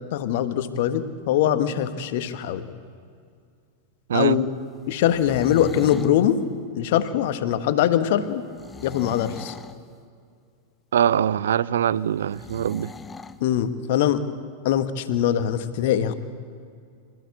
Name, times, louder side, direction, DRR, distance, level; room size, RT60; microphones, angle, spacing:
voice 1, 0.1-2.7 4.1-4.5 4.9-6.4 6.8-8.4 8.8-9.6 13.4-14.2 14.6-16.1, left 10 dB, 50° left, 11 dB, 1.4 m, -22 dB
sound 1, 4.9-6.2 8.5-9.8 12.3-13.4, left 4 dB, 15° left, 0.9 m, -40 dB
voice 2, 10.9-12.9, right 9 dB, 65° right, 20 dB, 0.6 m, -22 dB
26.0 x 14.5 x 8.4 m, 2.3 s
figure-of-eight pair, 90°, 0 cm